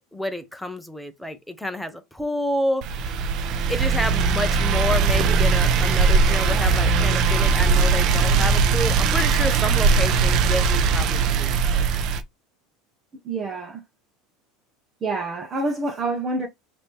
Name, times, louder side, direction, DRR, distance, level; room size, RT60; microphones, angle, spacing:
voice 1, 0.1-2.8 3.7-11.9, left 1 dB, ahead, 1.0 m, -29 dB
sound 1, 2.8-12.2, right 5 dB, 55° right, 0.7 m, -20 dB
voice 2, 13.2-13.8 15.0-16.5, right 2 dB, 30° right, 1.2 m, -27 dB
5.0 x 3.0 x 3.6 m
supercardioid pair, 110°, 0 cm